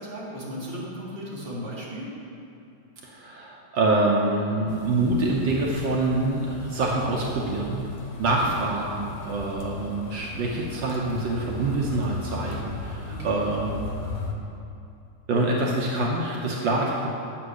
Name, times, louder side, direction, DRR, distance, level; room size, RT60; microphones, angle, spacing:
voice 1, 0.0-2.1 8.1-8.5 13.1-13.5, equal, 20° right, -6 dB, 1.9 m, -36 dB
voice 2, 3.0-7.9 8.2-13.9 15.3-17.1, right 2 dB, 85° right, -2 dB, 1.0 m, -26 dB
sound 1, 4.7-14.3, left 3 dB, 75° left, 2.3 m, -38 dB
8.6 x 7.4 x 6.5 m, 2.6 s
omnidirectional pair, 3.4 m